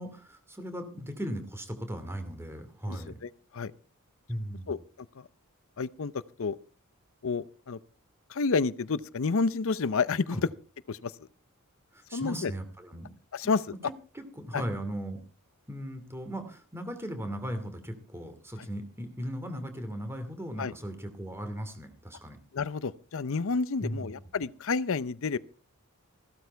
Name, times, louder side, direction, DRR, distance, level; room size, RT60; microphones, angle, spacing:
voice 1, 0.0-3.2 4.3-4.7 10.3-10.4 11.9-13.1 14.1-15.2 15.7-22.4 23.8-24.1, equal, 10° right, 2.6 m, -37 dB
voice 2, 2.9-3.7 4.7-4.8 5.1-5.3 5.8-6.1 6.4-6.6 7.2-7.8 8.3-10.5 10.9-11.1 12.1-12.5 13.3-13.7 14.5-14.6 18.6-18.7 20.6-20.7 22.5-25.4, left 4 dB, 65° left, 0.6 m, -30 dB
15.5 x 12.5 x 4.6 m
head